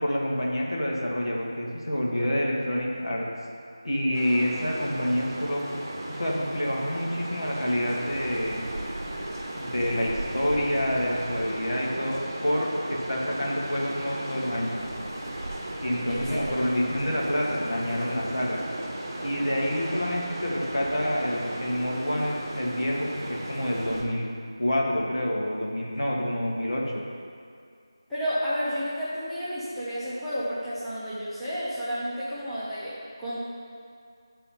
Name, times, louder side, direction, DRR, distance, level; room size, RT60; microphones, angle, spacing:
voice 1, 0.0-3.3 3.8-5.6 6.1-8.6 9.5-14.8 15.8-18.6 19.2-24.3 24.6-27.0, equal, 70° left, -3 dB, 1.6 m, -28 dB
sound 1, 4.1-24.0, right 1 dB, 30° right, 1.0 m, -36 dB
voice 2, 16.0-16.6 28.1-33.4, equal, ahead, -16 dB, 0.8 m, -31 dB
8.4 x 4.1 x 5.5 m, 2.3 s
figure-of-eight pair, 165°, 2 cm